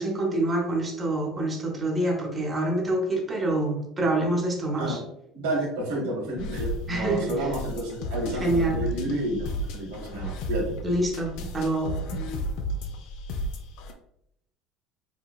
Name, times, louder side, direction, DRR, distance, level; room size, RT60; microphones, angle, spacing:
voice 1, 0.0-5.0 6.9-7.3 8.4-8.8 10.8-12.0, right 1 dB, 20° right, 2 dB, 0.7 m, -26 dB
voice 2, 5.3-10.7 11.4-11.6 12.1-12.4, right 1 dB, 85° right, -1 dB, 1.1 m, -31 dB
sound 1, 6.4-13.9, equal, 70° left, 0.4 m, -33 dB
4.2 x 2.9 x 2.3 m, 0.74 s
cardioid pair, 130°, 0 cm